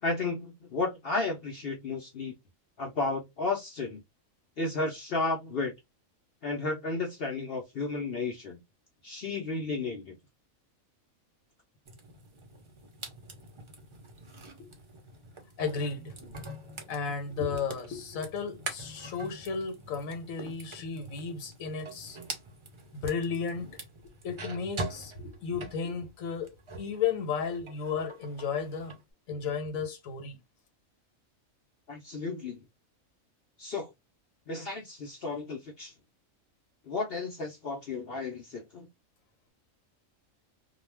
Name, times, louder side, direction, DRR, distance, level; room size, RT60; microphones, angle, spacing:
voice 1, 0.0-2.3 2.8-4.0 4.6-5.7 6.4-8.6 9.0-10.2 31.9-32.6 33.6-33.9 34.5-35.9 36.9-38.9, left 3 dB, 55° left, 0.7 m, -33 dB
sound 1, 11.8-27.0 27.3-29.0, right 2 dB, 50° right, 0.3 m, -44 dB
voice 2, 15.6-16.2 16.9-22.2 22.9-23.7 24.2-26.5 26.8-28.9 29.3-30.4, left 5 dB, 75° left, 1.2 m, -33 dB
2.3 x 2.2 x 3.2 m
omnidirectional pair, 1.4 m